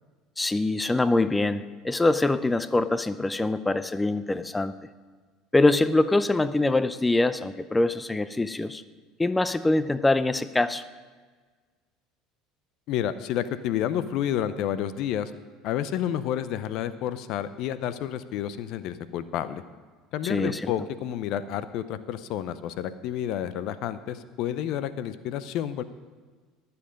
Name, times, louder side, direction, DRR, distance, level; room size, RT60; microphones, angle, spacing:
voice 1, 0.4-4.7 5.5-8.8 9.2-10.8 20.2-20.7, left 2 dB, 15° left, 14 dB, 0.6 m, -24 dB
voice 2, 12.9-15.3 15.6-19.6 20.1-25.8, left 10 dB, 60° left, 14 dB, 0.6 m, -30 dB
20.0 x 7.0 x 5.2 m, 1.4 s
hypercardioid pair, 70°, 0 cm